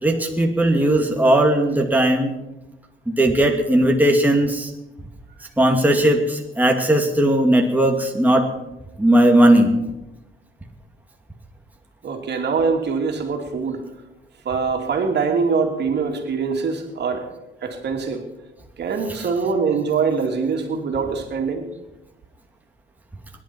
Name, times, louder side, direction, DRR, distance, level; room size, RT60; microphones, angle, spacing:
voice 1, 0.0-2.4 3.1-4.7 5.6-8.5 9.0-9.7 19.1-19.4, right 1 dB, 10° right, 1 dB, 2.5 m, -17 dB
voice 2, 12.0-13.8 14.4-17.3 17.6-18.2 18.8-21.6, right 5 dB, 60° right, 3 dB, 2.8 m, -23 dB
24.5 x 11.0 x 4.6 m, 0.96 s
cardioid pair, 90°, 20 cm